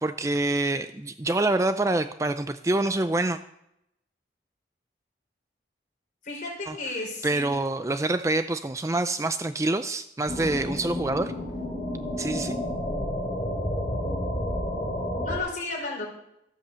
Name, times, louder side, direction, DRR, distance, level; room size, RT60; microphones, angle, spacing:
voice 1, 0.0-3.4 6.7-6.8 7.2-11.3 12.2-12.6, right 2 dB, 15° right, 10 dB, 0.4 m, -26 dB
voice 2, 6.2-7.5 15.2-16.1, left 3 dB, 45° left, -1 dB, 4.8 m, -33 dB
sound 1, 10.3-15.4, left 1 dB, 25° left, 3.9 m, -30 dB
14.0 x 8.5 x 6.9 m, 0.82 s
head